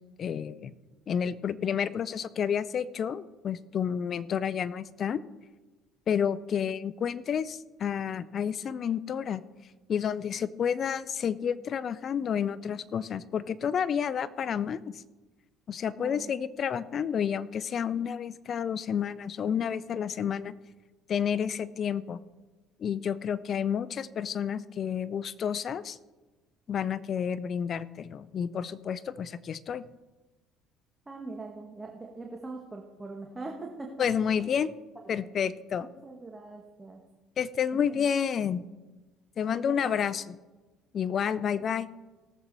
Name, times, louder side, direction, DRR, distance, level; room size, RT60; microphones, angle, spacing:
voice 1, 0.2-0.7 1.1-5.2 6.1-9.4 9.9-15.0 15.7-20.5 21.1-22.2 22.8-26.0 26.7-29.9 34.0-34.7 35.1-35.9 37.4-38.6 39.4-40.3 40.9-41.9, left 8 dB, 50° left, 18 dB, 0.5 m, -30 dB
voice 2, 16.0-16.3 31.0-34.1 34.4-34.5 35.0-35.3 35.8-37.0 37.9-38.1 39.4-40.1 41.2-41.6, right 3 dB, 20° right, 1 dB, 1.5 m, -42 dB
18.5 x 7.4 x 4.1 m, 1.2 s
supercardioid pair, 90°, 0 cm